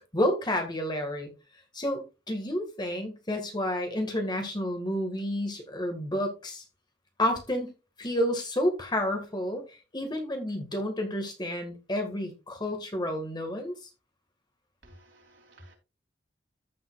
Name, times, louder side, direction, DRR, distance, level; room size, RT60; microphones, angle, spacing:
voice 1, 0.1-1.3 1.7-6.6 7.2-7.7 8.0-9.6 9.9-13.8, left 1 dB, 25° left, 1.8 m, -30 dB
voice 2, 14.8-15.7, right 2 dB, 90° right, 3.2 m, -58 dB
14.5 x 5.4 x 2.4 m
head